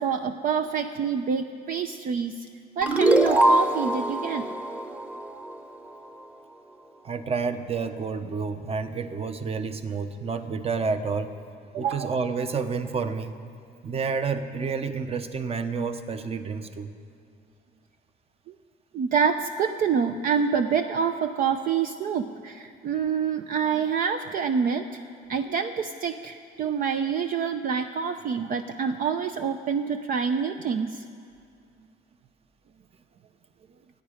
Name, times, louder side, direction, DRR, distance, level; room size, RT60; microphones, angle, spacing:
voice 1, 0.0-2.5 2.8-4.5 11.7-12.1 18.9-25.0 25.3-31.0, right 6 dB, 55° right, 7 dB, 0.7 m, -27 dB
sound 1, 2.8-6.0, right 1 dB, 10° right, 1.0 m, -23 dB
voice 2, 7.0-11.3 11.8-13.3 13.8-16.9, right 5 dB, 35° right, 9 dB, 1.0 m, -29 dB
28.0 x 9.9 x 5.1 m, 2.3 s
cardioid pair, 110°, 17 cm